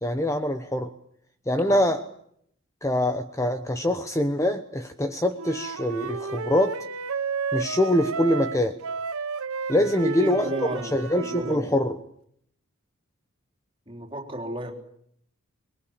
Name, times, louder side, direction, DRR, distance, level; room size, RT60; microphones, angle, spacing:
voice 1, 0.0-0.9 1.5-2.0 2.8-6.8 7.5-8.8 9.7-11.9, left 1 dB, 15° left, 1.0 m, -24 dB
Wind instrument woodwind instrument, 5.4-11.6, right 5 dB, 85° right, 1.1 m, -32 dB
voice 2, 9.8-11.7 13.9-14.7, equal, 25° right, 3.7 m, -32 dB
25.5 x 22.0 x 8.6 m
head